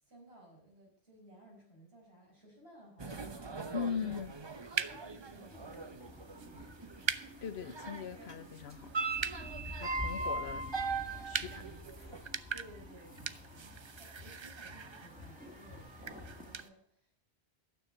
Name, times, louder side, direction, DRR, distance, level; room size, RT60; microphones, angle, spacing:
voice 1, 0.0-3.8 4.7-7.1 12.5-17.2, right 1 dB, 70° right, -2 dB, 5.2 m, -58 dB
sound 1, 3.0-8.4 8.7-12.2, right 3 dB, 30° right, 0.7 m, -40 dB
voice 2, 3.7-4.3 7.4-8.9 9.7-10.7 11.2-12.2, left 7 dB, 75° left, 10 dB, 1.0 m, -40 dB
sound 2, 4.1-16.7, right 6 dB, 50° right, 0.3 m, -44 dB
sound 3, 5.5-16.6, left 1 dB, 10° right, 2.0 m, -49 dB
12.5 x 6.9 x 7.7 m, 0.65 s
omnidirectional pair, 1.1 m